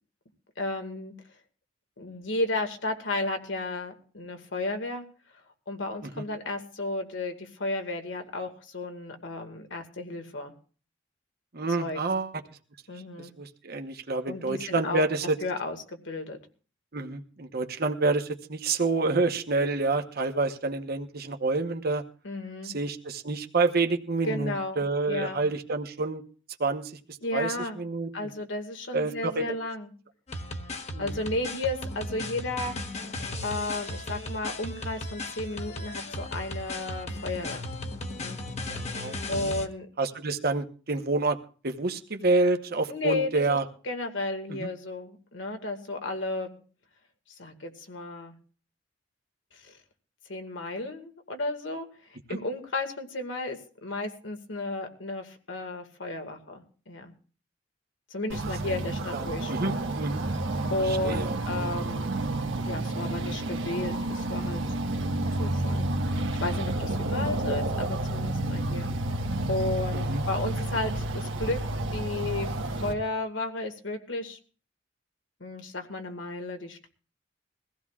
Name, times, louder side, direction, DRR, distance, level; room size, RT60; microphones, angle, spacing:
voice 1, 0.6-1.1 2.0-5.0 5.7-10.5 11.8-12.0 12.9-13.3 14.3-15.0 15.4-16.4 22.2-22.7 24.2-25.4 27.2-27.8 28.1-29.9 31.0-32.8 33.4-37.7 38.2-38.4 39.3-39.9 42.9-43.6 43.8-46.6 47.4-48.3 49.5-49.8 50.3-51.9 52.3-57.1 58.1-59.8 60.7-62.2 62.6-64.6 65.4-68.9 69.5-71.6 71.9-74.4 75.4-76.9, left 2 dB, 85° left, 5 dB, 1.9 m, -33 dB
voice 2, 11.5-12.3 13.2-15.4 16.9-22.0 22.6-26.2 26.6-26.9 27.3-28.3 28.9-29.6 30.9-31.2 38.7-39.5 40.0-41.4 41.6-43.6 44.5-44.7 52.3-52.4 58.6-58.8 59.1-60.2 60.9-61.7 69.9-70.2, right 3 dB, 55° right, 5 dB, 1.0 m, -28 dB
sound 1, 30.3-39.7, left 1 dB, 35° left, 1.1 m, -36 dB
sound 2, 58.3-72.9, right 1 dB, 85° right, 1.4 m, -30 dB
22.5 x 15.5 x 2.4 m, 0.39 s
head